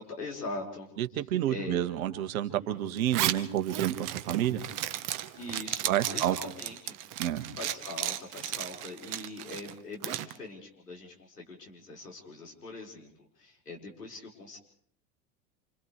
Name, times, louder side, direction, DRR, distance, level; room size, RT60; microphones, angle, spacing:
voice 1, 0.0-0.9 1.5-1.8 2.6-3.0 5.4-7.0 7.5-14.6, left 2 dB, 80° left, -2 dB, 5.4 m, -42 dB
voice 2, 1.0-4.6 5.9-6.4 7.2-7.5, right 12 dB, 60° right, 8 dB, 1.8 m, -29 dB
Zipper (clothing), 3.0-10.3, right 13 dB, 40° right, 1.2 m, -35 dB
29.0 x 27.5 x 3.4 m, 0.62 s
figure-of-eight pair, 75°, 46 cm